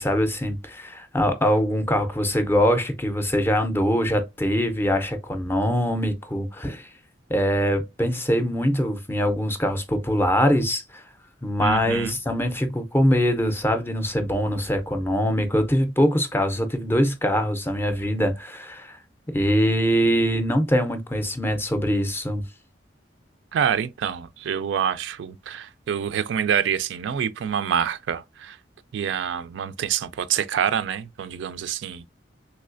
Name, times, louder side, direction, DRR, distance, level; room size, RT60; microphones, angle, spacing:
voice 1, 0.0-6.9 7.3-11.0 11.4-19.0 19.3-22.4, equal, 10° left, 0.4 m, -23 dB
voice 2, 11.6-12.1 23.5-28.6 28.9-32.1, right 8 dB, 75° right, 0.3 m, -26 dB
3.1 x 3.1 x 2.4 m
head